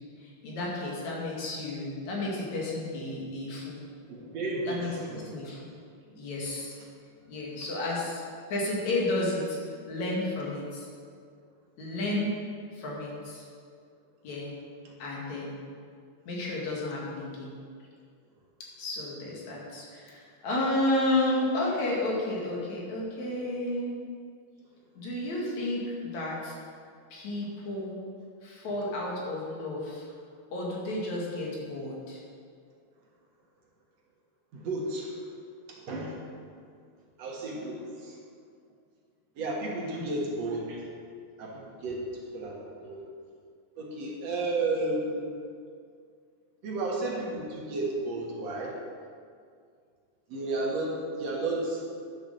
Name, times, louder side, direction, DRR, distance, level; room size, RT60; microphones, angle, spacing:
voice 1, 0.2-3.8 4.7-5.7 6.2-6.8 7.3-8.2 8.5-9.6 9.9-10.9 11.8-12.4 12.7-13.4 14.2-14.5 15.0-15.6 16.2-17.5 18.8-23.9 24.9-26.5 27.1-28.0 28.4-30.1 30.5-32.2 39.9-40.1, left 1 dB, 70° left, -3 dB, 3.4 m, -32 dB
voice 2, 4.1-5.3 14.8-14.9 16.4-16.5 34.5-35.2 35.7-36.2 37.2-38.2 39.4-40.9 41.4-42.0 42.3-43.0 43.8-45.2 46.6-48.7 50.3-51.8, right 2 dB, 60° right, -2 dB, 2.7 m, -33 dB
10.0 x 7.2 x 6.7 m, 2.2 s
omnidirectional pair, 3.4 m